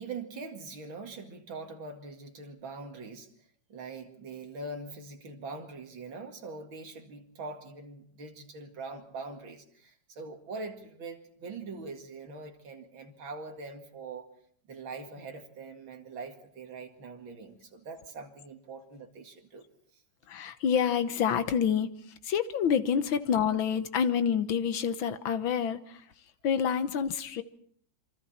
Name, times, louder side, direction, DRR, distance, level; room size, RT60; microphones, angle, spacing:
voice 1, 0.0-3.3 3.7-14.3 14.7-19.7, right 3 dB, 85° right, 4 dB, 3.0 m, -43 dB
voice 2, 20.3-21.9 22.2-26.0 26.4-27.4, left 7 dB, 85° left, 11 dB, 1.9 m, -27 dB
27.5 x 24.5 x 4.3 m, 0.62 s
omnidirectional pair, 2.1 m